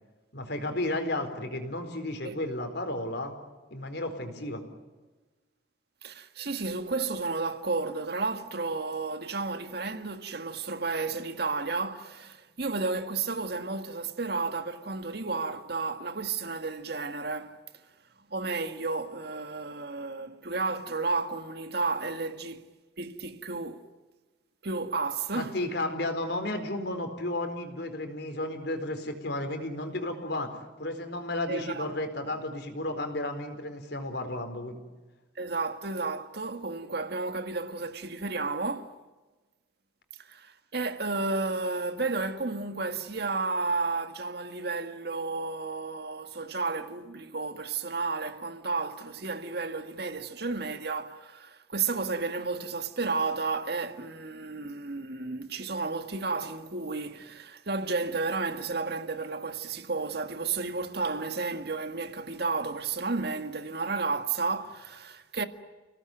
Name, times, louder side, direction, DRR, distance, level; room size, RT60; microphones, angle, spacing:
voice 1, 0.3-3.3 3.7-4.6 25.3-30.5 30.8-34.8, left 1 dB, 60° left, 4.3 m, -33 dB
voice 2, 6.0-17.6 18.3-22.7 23.0-23.9 24.6-25.6 31.5-31.9 32.2-32.3 35.4-39.0 40.2-65.4, right 3 dB, 60° right, 1.8 m, -32 dB
30.0 x 18.5 x 9.2 m
head